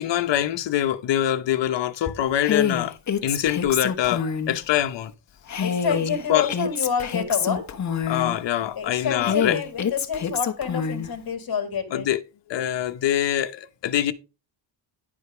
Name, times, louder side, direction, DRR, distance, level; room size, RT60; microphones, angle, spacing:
voice 1, 0.0-2.9 3.2-5.1 5.9-6.0 6.3-6.5 8.1-9.6 11.9-12.2 12.5-14.1, left 11 dB, 75° left, 1.0 m, -24 dB
Female speech woman speaking, 2.4-4.6 5.5-8.4 9.2-11.1, left 7 dB, 40° left, 1.1 m, -26 dB
voice 2, 5.6-7.7 8.8-12.1, left 6 dB, 55° left, 2.1 m, -28 dB
10.5 x 5.1 x 5.0 m
cardioid pair, 115°, 43 cm